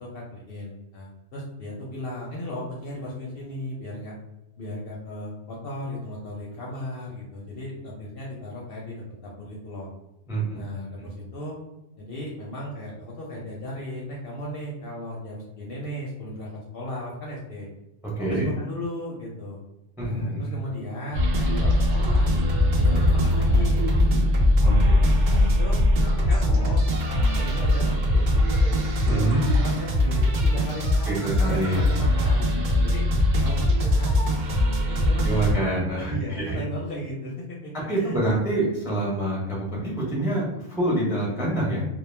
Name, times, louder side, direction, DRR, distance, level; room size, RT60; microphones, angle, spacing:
voice 1, 0.0-4.1 4.6-9.9 10.5-11.6 12.0-17.7 18.2-19.6 20.0-22.3 22.8-24.3 24.8-26.8 27.1-28.7 29.1-33.0 33.4-34.2 34.5-38.4, left 1 dB, 60° left, -4 dB, 0.6 m, -36 dB
voice 2, 10.3-10.6 18.2-18.5 20.0-20.5 24.6-24.7 29.1-29.4 31.1-31.8 35.2-36.6 37.9-41.8, right 2 dB, 5° right, -5 dB, 0.4 m, -26 dB
sound 1, 21.1-35.5, left 1 dB, 75° right, 0.4 m, -21 dB
2.2 x 2.0 x 3.1 m, 0.93 s
omnidirectional pair, 1.3 m